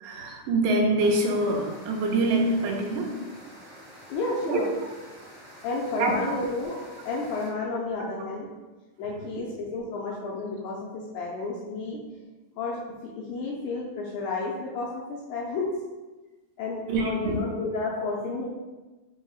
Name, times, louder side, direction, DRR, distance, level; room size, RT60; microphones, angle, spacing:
voice 1, 0.0-3.1 4.5-4.6 6.0-6.3 16.9-17.4, right 2 dB, 85° right, 1 dB, 2.3 m, -25 dB
sound 1, 1.0-7.5, equal, 70° right, 0.7 m, -48 dB
voice 2, 4.1-4.7 5.6-6.8 7.1-8.5 9.0-12.0 12.6-12.8 13.2-15.8 16.6-18.5, left 3 dB, 80° left, -4 dB, 1.8 m, -31 dB
5.3 x 2.1 x 3.8 m, 1.2 s
omnidirectional pair, 3.9 m